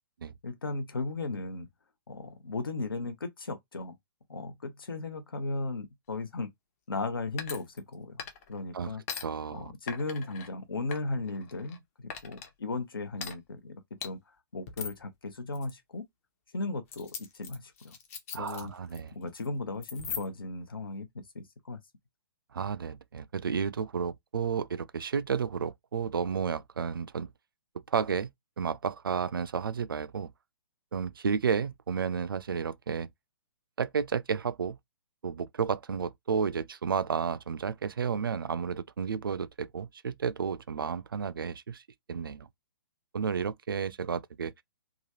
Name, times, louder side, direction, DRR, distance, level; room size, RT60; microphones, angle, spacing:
voice 1, 0.4-1.7 2.1-4.0 4.3-6.5 6.9-9.0 9.5-14.2 14.5-16.0 16.5-18.0 18.3-18.7 19.1-21.8, left 3 dB, 70° left, 0.9 m, -36 dB
sound 1, 7.4-7.9 8.2-8.6 9.1-9.2 9.9-10.5 10.9-11.8 12.1-12.5 13.2-13.3 14.0-14.1 14.7-15.0 15.5-15.7 16.9-19.0 19.3-19.5 19.8-20.5, left 7 dB, 35° left, 0.7 m, -40 dB
voice 2, 9.2-9.7 18.3-19.1 22.5-27.3 27.9-28.3 28.6-30.3 30.9-33.1 33.8-34.8 35.2-41.8 42.1-42.5 43.1-44.5, right 6 dB, 65° right, 0.4 m, -32 dB
2.9 x 2.4 x 2.9 m
figure-of-eight pair, 125°, 12 cm